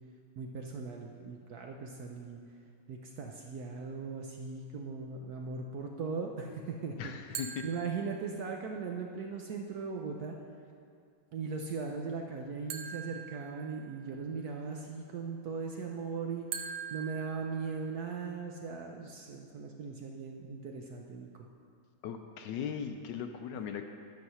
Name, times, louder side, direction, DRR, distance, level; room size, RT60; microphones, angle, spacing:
voice 1, 0.4-2.4 2.9-7.1 7.6-10.3 11.3-21.5, right 5 dB, 65° right, 1 dB, 1.0 m, -39 dB
voice 2, 7.0-7.6 22.0-23.9, left 7 dB, 75° left, 6 dB, 1.1 m, -38 dB
sound 1, 7.3-8.6 12.7-14.2 16.5-18.2, right 7 dB, 90° right, 1.5 m, -43 dB
10.5 x 6.3 x 5.6 m, 2.3 s
omnidirectional pair, 2.2 m